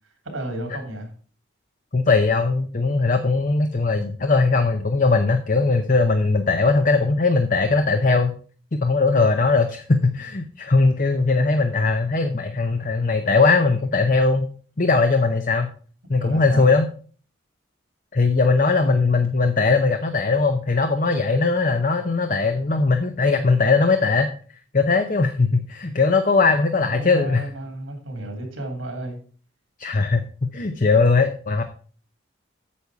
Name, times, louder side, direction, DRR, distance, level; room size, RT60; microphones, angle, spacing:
voice 1, 0.2-1.1 11.3-11.4 16.2-16.8 18.8-18.9 26.8-29.2, right 1 dB, 90° right, 3.1 m, -32 dB
voice 2, 1.9-8.3 8.8-14.5 14.8-15.7 16.1-16.9 18.1-24.3 24.7-27.5 29.8-31.6, left 3 dB, 40° left, 0.7 m, -19 dB
8.5 x 7.0 x 4.7 m
head